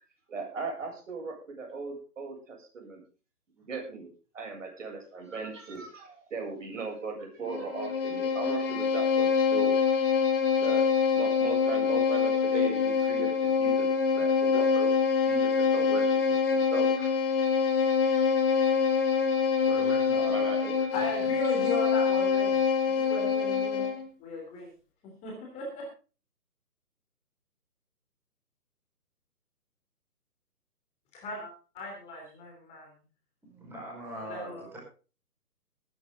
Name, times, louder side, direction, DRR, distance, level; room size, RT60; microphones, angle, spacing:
voice 1, 0.3-3.0 3.7-9.7 10.6-10.8 11.1-13.9 14.1-14.9 15.3-17.1 20.3-20.7, right 4 dB, 50° right, 2 dB, 7.4 m, -38 dB
Bowed string instrument, 7.4-24.1, left 6 dB, 35° left, 2.1 m, -25 dB
voice 2, 19.7-20.6 21.2-21.3 33.4-34.8, equal, 5° right, -5 dB, 4.9 m, -41 dB
voice 3, 20.9-24.7 25.0-25.9 31.1-32.9 34.3-34.8, left 2 dB, 15° left, -1 dB, 3.3 m, -38 dB
18.5 x 10.5 x 3.8 m, 0.36 s
figure-of-eight pair, 145°, 47 cm